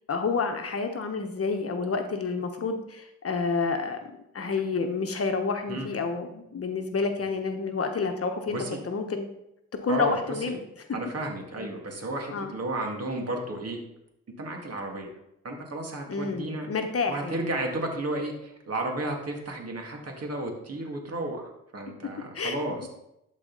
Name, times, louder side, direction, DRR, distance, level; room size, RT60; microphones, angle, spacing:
voice 1, 0.1-4.0 4.3-9.3 9.8-10.6 11.5-11.7 12.3-12.5 16.1-17.5 22.3-22.6 22.8-22.9, left 4 dB, 45° left, 5 dB, 1.1 m, -29 dB
voice 2, 10.9-13.8 14.4-15.1 15.4-16.7 17.1-22.9, right 2 dB, 45° right, 1 dB, 2.2 m, -33 dB
11.0 x 4.2 x 4.0 m, 0.83 s
supercardioid pair, 65°, 34 cm